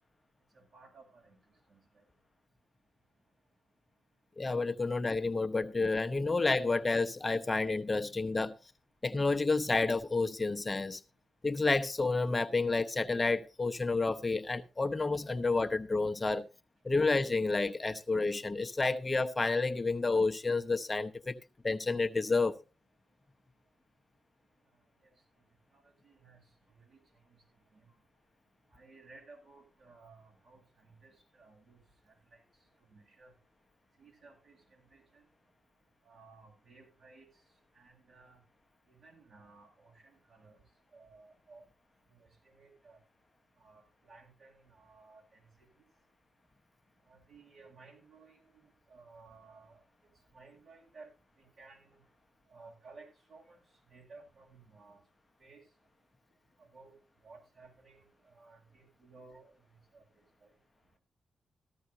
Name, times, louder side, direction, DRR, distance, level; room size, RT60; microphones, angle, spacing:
voice 1, 0.5-1.4 1.7-1.8 25.7-26.4 26.9-27.0 27.7-27.8 28.7-31.1 31.4-31.8 32.1-32.4 32.9-33.3 34.0-35.2 36.0-37.2 37.8-38.4 38.9-40.5 40.9-41.6 42.1-43.0 43.6-45.4 47.1-48.6 48.9-49.8 50.3-51.1 51.4-52.0 52.5-53.6 53.9-55.0 55.4-55.6 56.7-56.9 57.2-58.0 58.4-59.5 59.9-60.0, right 3 dB, 65° right, 7.1 m, -57 dB
voice 2, 4.4-8.5 9.0-11.0 11.4-16.5 16.8-21.4 21.6-22.6, left 3 dB, 30° left, 0.9 m, -30 dB
15.0 x 12.5 x 2.8 m
cardioid pair, 60°, 0 cm